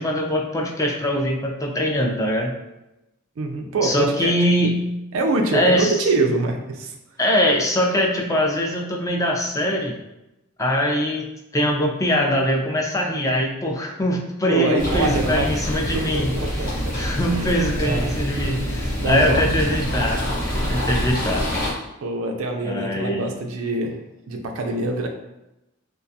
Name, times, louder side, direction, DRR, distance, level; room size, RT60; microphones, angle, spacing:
voice 1, 0.0-2.5 3.8-4.9 5.5-5.9 7.2-9.9 10.6-11.3 11.5-16.3 16.6-20.2 20.7-21.4 22.6-23.3, equal, 15° left, 0 dB, 0.3 m, -22 dB
voice 2, 3.4-4.3 5.1-7.0 14.4-15.6 15.9-17.0 17.3-18.1 19.0-19.4 22.0-24.0 24.3-25.1, right 2 dB, 90° right, 4 dB, 0.4 m, -24 dB
sound 1, 14.8-21.7, equal, 45° left, 0.8 m, -25 dB
2.4 x 2.2 x 2.6 m, 0.93 s
head